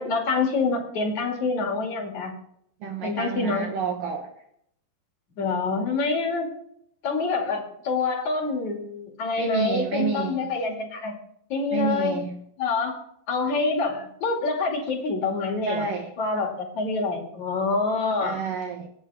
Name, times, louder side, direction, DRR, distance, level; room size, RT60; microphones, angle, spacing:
voice 1, 0.0-2.3 3.0-3.7 5.4-6.5 7.0-11.2 11.5-12.2 12.6-15.8 16.2-18.4, left 3 dB, 45° left, 2 dB, 3.2 m, -26 dB
voice 2, 2.8-4.3 9.4-10.4 11.7-12.4 15.6-16.1 18.2-18.9, right 5 dB, 65° right, 4 dB, 2.3 m, -29 dB
25.0 x 9.4 x 3.5 m, 0.71 s
omnidirectional pair, 5.5 m